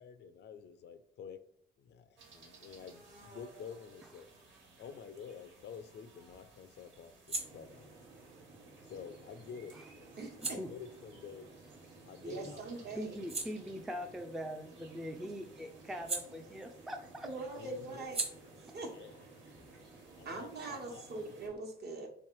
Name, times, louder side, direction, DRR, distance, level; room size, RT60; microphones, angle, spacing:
voice 1, 0.0-1.4 1.8-4.3 4.8-7.9 8.9-11.5 12.0-12.9 17.6-18.1 18.9-19.1 20.2-21.0, left 6 dB, 60° left, 12 dB, 0.4 m, -49 dB
sound 1, 2.2-21.5, right 3 dB, 70° right, 1.4 m, -60 dB
sound 2, 6.7-12.4 12.8-17.0 17.3-20.7, right 3 dB, 30° right, 1.1 m, -46 dB
sound 3, 7.4-21.6, right 2 dB, 85° right, 1.1 m, -57 dB
voice 2, 10.2-10.6 12.2-13.2 17.2-18.3 18.6-19.3 20.2-22.1, right 3 dB, 55° right, 2 dB, 1.1 m, -43 dB
voice 3, 12.3-12.6 13.0-17.3 18.6-18.7, equal, ahead, 5 dB, 0.4 m, -42 dB
3.4 x 3.1 x 4.5 m, 0.66 s
cardioid pair, 90°, 20 cm